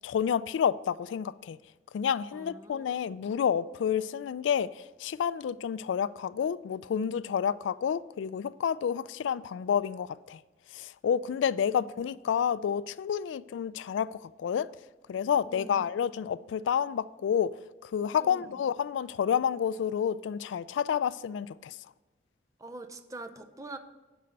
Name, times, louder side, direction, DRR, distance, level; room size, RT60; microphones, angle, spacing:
voice 1, 0.0-1.6 1.9-4.7 5.0-10.4 10.7-14.7 15.1-17.5 17.8-21.8, left 8 dB, 90° left, 0.3 m, -29 dB
voice 2, 2.3-3.0 11.7-12.0 15.5-15.9 18.2-18.6 22.6-23.8, right 2 dB, 20° right, 0.6 m, -45 dB
8.0 x 5.5 x 6.4 m
head